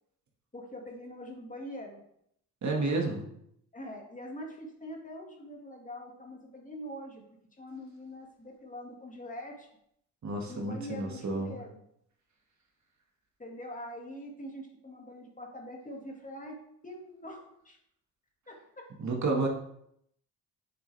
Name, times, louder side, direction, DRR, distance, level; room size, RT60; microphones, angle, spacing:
voice 1, 0.5-2.0 3.7-7.2 7.6-9.7 10.5-11.8 13.4-16.6 16.8-17.8 18.5-18.6, equal, 20° left, 0 dB, 2.0 m, -43 dB
voice 2, 2.6-3.2 10.2-11.6 19.0-19.5, right 3 dB, 45° right, 1 dB, 1.9 m, -30 dB
7.7 x 6.8 x 3.4 m, 0.72 s
supercardioid pair, 75°, 38 cm